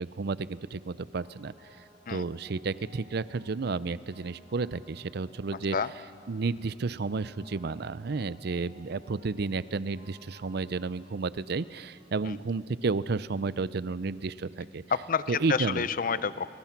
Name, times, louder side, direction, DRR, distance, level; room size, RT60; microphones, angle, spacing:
voice 1, 0.0-1.5 2.1-5.8 6.3-14.8 15.3-15.9, right 4 dB, 60° right, 17 dB, 0.5 m, -32 dB
sound 1, 0.7-12.3, equal, 85° left, 4.5 m, -59 dB
voice 2, 14.9-16.5, left 6 dB, 50° left, 15 dB, 0.6 m, -29 dB
29.5 x 20.0 x 5.9 m, 2.5 s
head